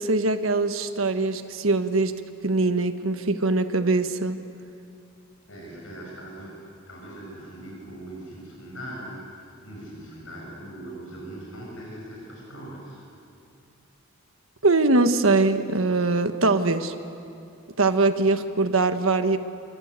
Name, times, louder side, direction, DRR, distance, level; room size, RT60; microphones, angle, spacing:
voice 1, 0.0-4.4 14.6-16.9 17.8-19.4, right 3 dB, 70° right, 8 dB, 1.4 m, -22 dB
voice 2, 5.5-13.0, right 1 dB, 70° left, -2 dB, 7.4 m, -40 dB
27.5 x 25.5 x 8.2 m, 2.6 s
head